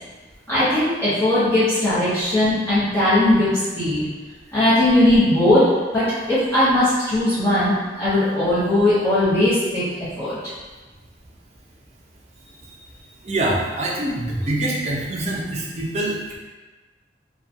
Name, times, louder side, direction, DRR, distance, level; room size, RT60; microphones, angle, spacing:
voice 1, 0.5-3.5 3.8-4.0 4.5-5.7 5.9-9.8 10.2-10.4, left 1 dB, 15° left, -15 dB, 0.7 m, -18 dB
voice 2, 13.2-16.4, right 1 dB, 40° right, -3 dB, 0.5 m, -25 dB
2.8 x 2.2 x 2.5 m, 1.3 s
head